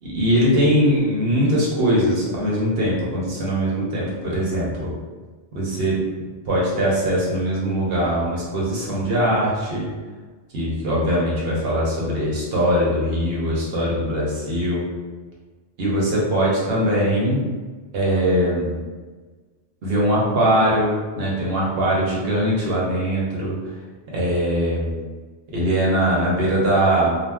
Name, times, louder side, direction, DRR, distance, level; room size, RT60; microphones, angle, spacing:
voice 1, 0.0-4.9 5.5-6.0 6.5-9.9 10.5-14.9 15.8-17.4 17.9-18.8 19.8-23.6 24.1-24.9 25.5-27.2, equal, 60° right, -5 dB, 1.0 m, -21 dB
2.5 x 2.0 x 3.3 m, 1.4 s
omnidirectional pair, 1.2 m